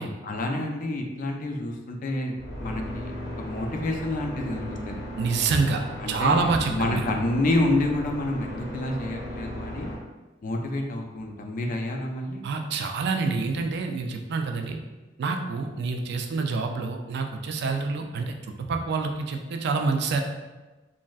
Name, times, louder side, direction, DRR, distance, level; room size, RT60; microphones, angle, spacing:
voice 1, 0.2-2.3 2.6-3.1 3.4-5.0 6.0-9.9 10.4-12.4, left 1 dB, 45° left, 2 dB, 0.4 m, -28 dB
sound 1, 2.3-9.9, equal, 70° left, 0.7 m, -37 dB
voice 2, 5.2-7.1 12.4-14.8 15.2-20.2, right 4 dB, 60° right, 4 dB, 0.3 m, -27 dB
3.1 x 2.5 x 2.3 m, 1.2 s
head